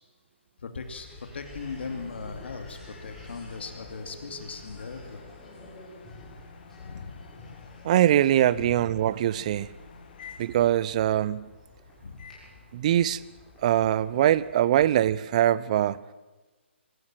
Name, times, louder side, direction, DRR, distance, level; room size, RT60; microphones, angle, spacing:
voice 1, 0.6-5.2 6.8-7.3 8.5-8.8 12.0-12.3, left 4 dB, 60° left, 7 dB, 2.5 m, -39 dB
sound 1, 0.8-14.5, left 1 dB, 5° left, 7.3 m, -49 dB
sound 2, 1.6-11.0 12.2-12.6 14.2-14.6, left 7 dB, 45° left, 2.4 m, -51 dB
voice 2, 7.8-9.7 10.4-11.5 12.7-13.2 13.6-16.0, right 12 dB, 35° right, 20 dB, 0.6 m, -22 dB
22.5 x 14.5 x 9.0 m, 1.2 s
hypercardioid pair, 150°, 7 cm